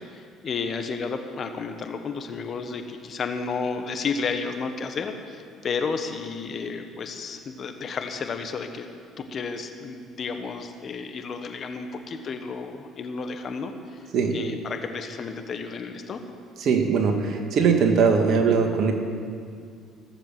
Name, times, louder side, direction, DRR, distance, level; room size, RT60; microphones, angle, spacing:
voice 1, 0.0-8.9 9.2-14.1 14.3-16.2, left 5 dB, 50° left, 6 dB, 1.3 m, -32 dB
voice 2, 16.6-18.9, right 5 dB, 60° right, 4 dB, 1.8 m, -21 dB
16.0 x 7.3 x 7.6 m, 2.2 s
hypercardioid pair, 65°, 0 cm